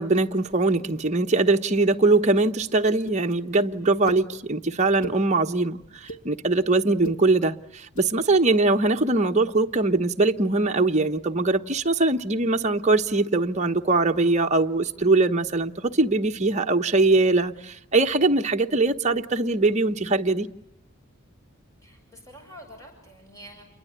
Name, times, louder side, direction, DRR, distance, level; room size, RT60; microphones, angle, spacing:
voice 1, 0.0-20.5, right 3 dB, 30° right, 1.1 m, -22 dB
sound 1, 3.1-3.2 4.1-4.2 4.8-5.2 5.8-6.2 6.9-7.2 7.8-8.1, right 3 dB, 85° left, 2.7 m, -36 dB
voice 2, 21.8-23.6, equal, 15° left, 7.2 m, -47 dB
29.0 x 22.5 x 8.2 m
head